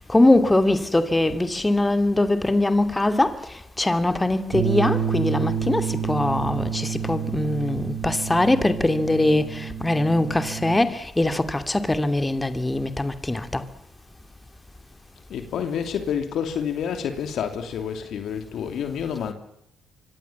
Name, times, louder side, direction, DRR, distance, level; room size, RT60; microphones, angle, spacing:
voice 1, 0.0-13.6, left 2 dB, 15° left, 2.7 m, -22 dB
Bass guitar, 4.5-10.8, right 8 dB, 75° right, 6.7 m, -29 dB
voice 2, 15.3-19.3, left 8 dB, 65° left, 2.9 m, -28 dB
25.5 x 25.0 x 7.3 m
hypercardioid pair, 55°, 0 cm